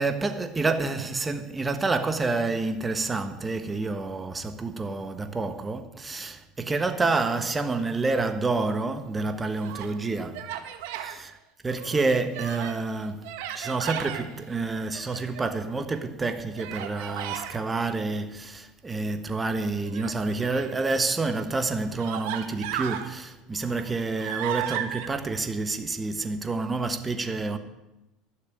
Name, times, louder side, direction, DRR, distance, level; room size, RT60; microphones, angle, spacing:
voice 1, 0.0-10.4 11.0-11.3 11.6-13.2 13.5-27.6, right 3 dB, 20° right, 1.3 m, -28 dB
Human voice, 9.3-9.9 10.3-11.2 11.7-12.8 13.2-14.2 14.9-15.7 16.6-17.6 19.8-20.8 21.5-21.6 22.0-23.1 23.6-25.1, right 11 dB, 75° right, 1.3 m, -35 dB
12.0 x 6.6 x 9.1 m
supercardioid pair, 90°, 0 cm